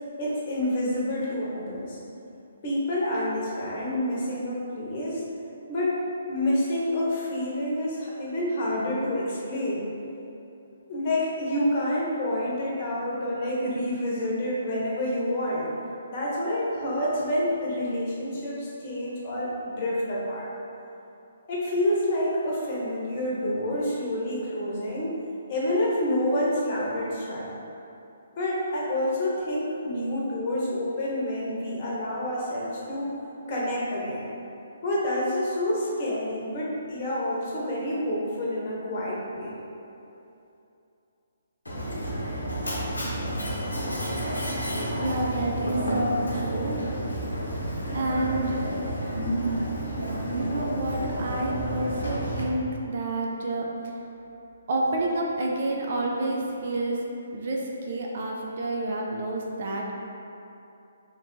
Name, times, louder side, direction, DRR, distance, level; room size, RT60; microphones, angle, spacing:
voice 1, 0.2-2.0 2.6-5.2 5.7-6.0 6.3-9.8 10.9-15.7 16.1-20.5 21.5-25.1 25.5-27.5 28.4-33.1 33.5-34.3 34.8-39.5, left 1 dB, 40° left, -6 dB, 0.9 m, -28 dB
Mechanisms, 41.7-52.4, right 1 dB, 80° left, 0.9 m, -30 dB
voice 2, 44.9-46.8 47.9-48.6 50.4-53.7 54.7-57.1 57.3-60.0, right 2 dB, 50° right, -1 dB, 0.4 m, -29 dB
3.0 x 2.5 x 4.3 m, 2.8 s
figure-of-eight pair, 135°, 0 cm